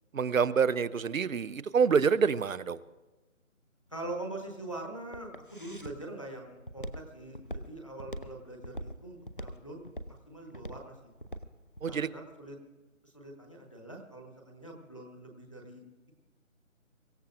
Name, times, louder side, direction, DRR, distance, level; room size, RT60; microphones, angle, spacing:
voice 1, 0.1-2.8 11.8-12.1, right 6 dB, 75° right, 18 dB, 0.7 m, -27 dB
Walk footsteps, 3.9-12.0, equal, 40° left, 0.6 m, -43 dB
voice 2, 3.9-9.9 10.3-10.9 11.9-12.6 13.0-15.8, right 2 dB, 25° left, 1 dB, 1.1 m, -43 dB
24.5 x 15.0 x 2.5 m, 1.2 s
figure-of-eight pair, 180°, 40 cm